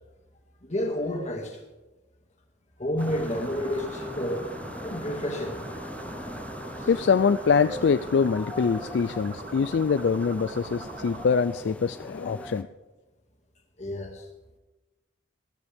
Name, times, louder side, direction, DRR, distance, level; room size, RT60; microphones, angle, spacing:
voice 1, 0.6-1.6 2.8-4.5 4.8-5.6 6.8-6.9 13.8-14.3, left 1 dB, 40° left, 2 dB, 2.2 m, -30 dB
sound 1, 3.0-12.6, left 1 dB, 10° left, 0.5 m, -41 dB
sound 2, 3.0-11.2, right 2 dB, 80° right, 2.6 m, -41 dB
voice 2, 6.9-12.7, left 5 dB, 65° left, 11 dB, 0.4 m, -24 dB
19.0 x 12.5 x 3.5 m, 1.1 s
head